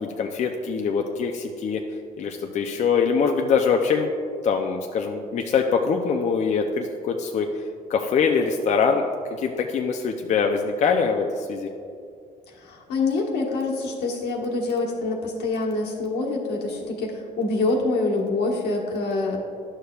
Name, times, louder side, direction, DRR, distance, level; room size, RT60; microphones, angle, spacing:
voice 1, 0.0-1.8 2.2-4.1 4.4-7.5 7.9-9.0 9.3-11.7, left 5 dB, 45° left, 3 dB, 0.5 m, -23 dB
voice 2, 12.5-19.4, left 3 dB, 75° left, -1 dB, 1.3 m, -26 dB
11.0 x 6.6 x 2.3 m, 2.3 s
cardioid pair, 110°, 17 cm